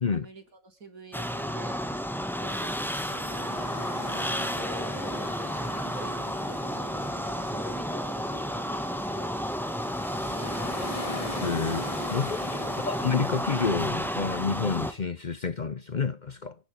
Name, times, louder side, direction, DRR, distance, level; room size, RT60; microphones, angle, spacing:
voice 1, 0.1-1.8 2.4-3.6 4.0-4.3 4.6-9.4 10.1-11.1 12.6-13.1, right 2 dB, 90° right, 3.8 m, -47 dB
sound 1, 1.1-14.9, equal, ahead, 1.7 m, -32 dB
sound 2, 3.3-13.9, left 2 dB, 25° left, 2.0 m, -41 dB
voice 2, 11.4-11.8 12.1-12.5 12.8-16.6, left 5 dB, 40° left, 0.8 m, -29 dB
25.0 x 11.0 x 3.7 m
omnidirectional pair, 1.4 m